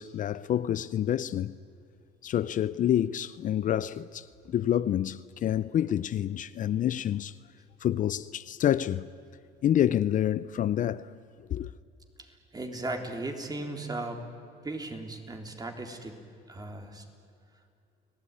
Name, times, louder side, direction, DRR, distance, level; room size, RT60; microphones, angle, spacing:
voice 1, 0.0-1.6 2.2-7.3 7.8-9.1 9.6-11.2 11.5-11.7, left 11 dB, 50° left, 0.6 m, -28 dB
voice 2, 12.2-14.2 14.6-16.2 16.5-17.0, right 2 dB, 20° right, 3.7 m, -37 dB
30.0 x 18.5 x 10.0 m
cardioid pair, 110°, 17 cm